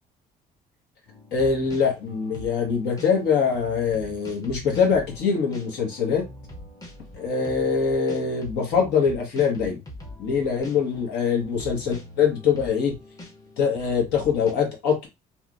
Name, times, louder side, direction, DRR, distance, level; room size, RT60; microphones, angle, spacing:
sound 1, 1.1-14.5, left 1 dB, 20° left, 0.9 m, -43 dB
voice 1, 1.3-6.2 7.1-9.8 10.2-13.0 13.6-15.1, left 6 dB, 80° left, 1.2 m, -23 dB
2.9 x 2.5 x 2.5 m
cardioid pair, 110°, 17 cm